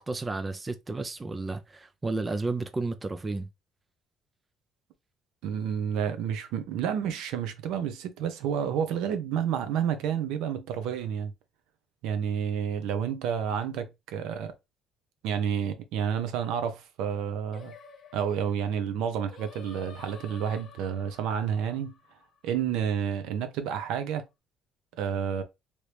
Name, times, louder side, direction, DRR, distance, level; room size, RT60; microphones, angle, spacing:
voice 1, 0.0-3.5, right 3 dB, 15° right, 0.3 m, -32 dB
voice 2, 5.4-11.3 12.0-14.5 15.2-17.7 18.1-21.9 22.4-24.2 25.0-25.4, right 8 dB, 80° right, 0.7 m, -30 dB
Singing, 17.5-22.8, left 6 dB, 40° left, 0.6 m, -51 dB
3.1 x 2.7 x 3.2 m
cardioid pair, 155°, 0 cm